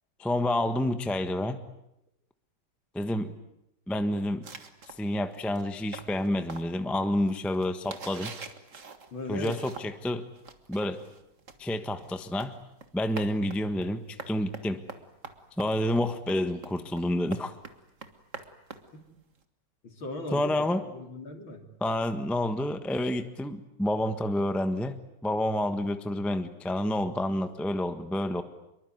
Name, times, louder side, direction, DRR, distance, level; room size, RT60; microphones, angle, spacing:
voice 1, 0.2-1.6 2.9-3.3 3.9-4.4 5.0-8.3 9.3-10.2 10.7-11.0 11.6-12.5 12.9-14.8 15.6-17.5 20.3-20.8 21.8-28.4, left 1 dB, ahead, 8 dB, 0.9 m, -29 dB
sound 1, 4.4-10.1 10.4-19.4, right 4 dB, 35° right, 1.9 m, -45 dB
voice 2, 9.1-9.6 18.9-19.0 19.8-20.7 20.9-21.6, left 2 dB, 60° left, 4 dB, 4.2 m, -37 dB
26.0 x 23.5 x 9.5 m, 0.84 s
omnidirectional pair, 2.4 m